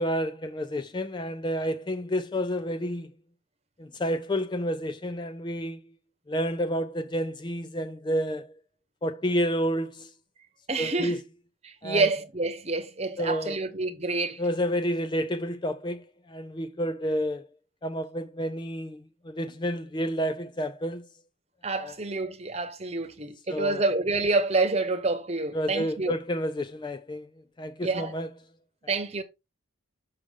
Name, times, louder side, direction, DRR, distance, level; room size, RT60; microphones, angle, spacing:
voice 1, 0.0-3.1 3.8-5.8 6.3-8.6 9.0-10.1 10.8-11.2 11.8-12.1 13.2-13.6 14.4-17.5 17.8-21.1 21.8-21.9 23.5-23.8 25.5-27.3 27.6-28.3, equal, 20° left, 0.3 m, -30 dB
voice 2, 10.7-11.2 11.6-14.4 21.6-26.2 27.8-28.2 28.9-29.2, right 3 dB, 30° right, 1.0 m, -28 dB
6.4 x 6.1 x 3.5 m
head